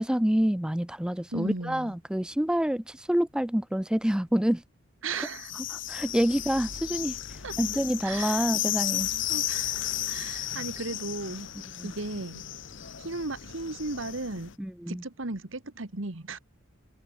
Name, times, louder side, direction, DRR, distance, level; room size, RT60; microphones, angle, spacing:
voice 1, 0.0-4.6 5.9-7.2 7.6-9.1 11.8-11.9 14.6-15.0, equal, 5° right, 0.4 m, -27 dB
voice 2, 1.3-1.9 5.0-5.6 7.4-7.6 8.0-8.5 9.3-9.8 10.1-12.4 13.0-14.5 14.9-16.4, right 3 dB, 70° right, 1.6 m, -36 dB
sound 1, 5.2-14.5, left 13 dB, 60° left, 0.9 m, -34 dB
head